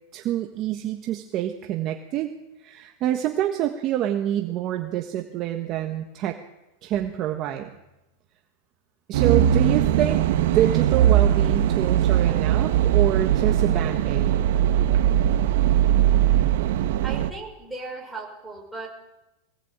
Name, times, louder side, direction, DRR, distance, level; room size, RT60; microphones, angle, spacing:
voice 1, 0.1-2.3 2.6-6.4 6.8-7.7 9.1-14.3, right 11 dB, 30° right, 4 dB, 1.4 m, -27 dB
sound 1, 9.1-17.3, right 11 dB, 55° right, 1.5 m, -20 dB
voice 2, 17.0-18.9, right 3 dB, 5° right, -3 dB, 5.1 m, -37 dB
21.5 x 18.0 x 8.9 m, 0.96 s
supercardioid pair, 175°, 0 cm